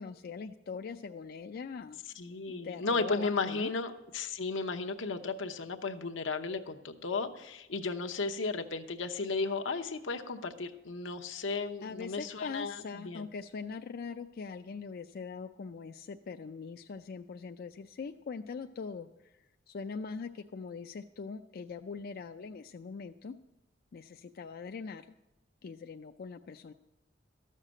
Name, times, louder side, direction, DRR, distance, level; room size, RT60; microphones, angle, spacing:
voice 1, 0.0-2.0 2.5-3.7 11.8-19.3 19.7-23.3 23.9-25.2 25.6-26.7, left 5 dB, 55° left, 7 dB, 0.4 m, -42 dB
voice 2, 2.2-13.3, left 4 dB, 85° left, 5 dB, 0.9 m, -34 dB
13.0 x 6.6 x 7.5 m, 0.96 s
head